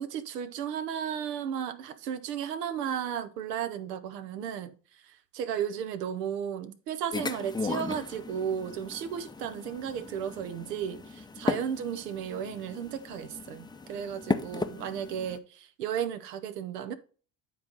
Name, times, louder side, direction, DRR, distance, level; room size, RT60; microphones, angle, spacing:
voice 1, 0.0-16.9, right 8 dB, 85° right, 0.8 m, -34 dB
sound 1, 7.1-15.4, left 3 dB, 10° left, 0.5 m, -36 dB
9.6 x 4.0 x 3.9 m
hypercardioid pair, 65°, 47 cm